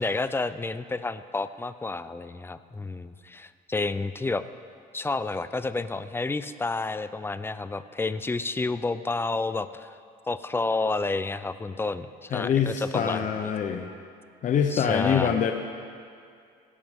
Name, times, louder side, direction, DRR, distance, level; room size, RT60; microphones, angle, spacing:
voice 1, 0.0-4.4 4.9-9.9 10.3-13.3 14.7-15.4, left 3 dB, 15° left, 13 dB, 0.4 m, -30 dB
voice 2, 12.3-13.9 14.4-15.5, left 7 dB, 50° left, 4 dB, 0.7 m, -25 dB
18.5 x 11.5 x 3.6 m, 2.3 s
cardioid pair, 110°, 17 cm